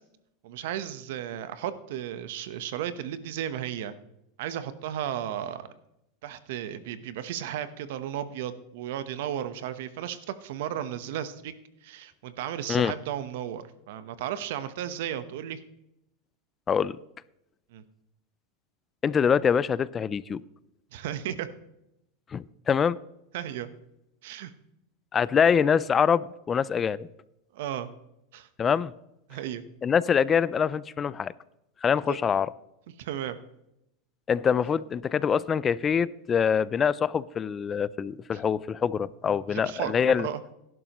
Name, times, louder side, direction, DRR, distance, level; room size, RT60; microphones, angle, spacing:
voice 1, 0.4-3.9 4.4-5.7 6.2-11.5 11.8-15.6 17.7-17.8 20.9-21.5 23.3-23.7 24.2-24.5 25.6-25.8 27.5-27.9 28.3-28.5 29.3-29.6 32.1-32.2 33.0-33.4 38.3-38.4 39.5-40.4, right 10 dB, 70° right, 12 dB, 1.0 m, -34 dB
voice 2, 19.0-20.4 22.3-23.0 25.1-27.1 28.6-28.9 29.8-31.3 31.8-32.5 34.3-40.3, left 7 dB, 25° left, 19 dB, 0.4 m, -24 dB
17.5 x 11.0 x 3.1 m, 0.84 s
supercardioid pair, 135°, 0 cm